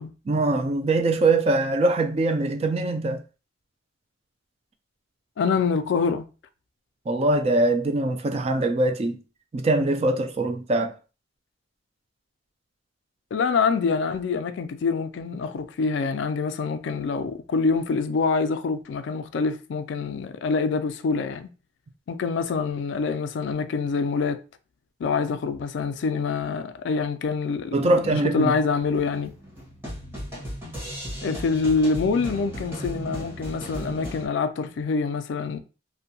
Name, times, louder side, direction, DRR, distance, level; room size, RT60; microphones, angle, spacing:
voice 1, 0.3-3.2 7.1-9.2 9.5-10.9 27.7-28.5, right 2 dB, 30° right, 0.3 m, -22 dB
voice 2, 5.4-6.3 13.3-21.5 22.1-24.4 25.0-29.3 31.2-35.6, left 4 dB, 65° left, 0.3 m, -25 dB
sound 1, 28.8-34.3, equal, 10° right, 1.0 m, -36 dB
2.6 x 2.1 x 2.7 m
head